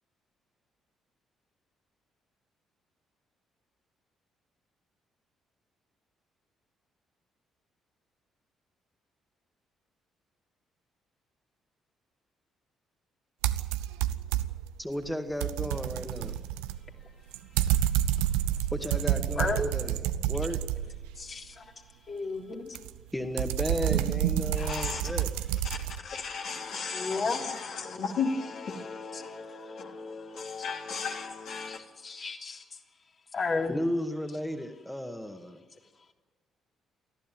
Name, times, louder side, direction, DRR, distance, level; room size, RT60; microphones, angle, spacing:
sound 1, 13.4-14.7 15.1-21.3 22.8-26.0, right 12 dB, 75° right, 0.7 m, -29 dB
voice 1, 14.8-16.3 18.8-20.0 20.3-20.6 23.1-25.5 33.7-35.6, equal, 5° left, 2.0 m, -34 dB
voice 2, 21.2-21.7 22.1-22.8 26.9-27.5 29.1-29.2 31.7-31.8 32.0-32.6 33.3-33.8, left 3 dB, 45° left, 3.3 m, -32 dB
voice 3, 24.6-25.0 25.6-31.8, left 5 dB, 60° left, 3.1 m, -35 dB
24.0 x 14.5 x 9.3 m
figure-of-eight pair, 45°, 0 cm